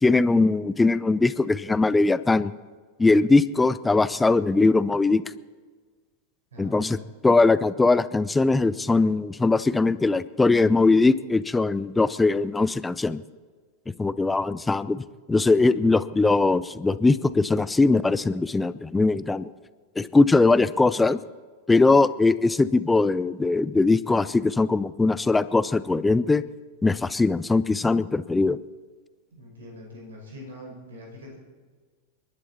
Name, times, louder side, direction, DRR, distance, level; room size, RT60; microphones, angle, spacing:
voice 1, 0.0-2.5 3.0-5.2 6.6-13.2 14.0-19.5 20.0-21.2 21.7-26.4 26.8-28.6, left 3 dB, 10° left, 16 dB, 0.5 m, -21 dB
voice 2, 6.5-7.0 29.3-31.4, left 1 dB, 65° right, 0 dB, 5.7 m, -43 dB
29.0 x 11.5 x 4.3 m, 1.5 s
figure-of-eight pair, 90°, 0 cm